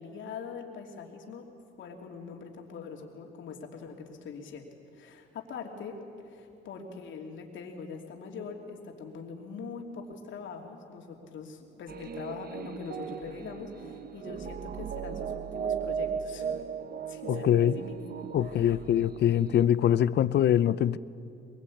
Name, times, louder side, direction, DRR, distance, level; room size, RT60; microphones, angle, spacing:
voice 1, 0.0-1.5 1.8-6.0 6.2-16.6 17.0-18.0 18.4-18.8, left 5 dB, 75° left, 1 dB, 3.0 m, -43 dB
sound 1, 11.9-19.6, right 7 dB, 50° right, 1.1 m, -37 dB
voice 2, 17.3-17.8 18.3-21.0, left 10 dB, 60° left, 17 dB, 0.6 m, -24 dB
22.5 x 22.0 x 8.6 m, 2.6 s
cardioid pair, 90°, 20 cm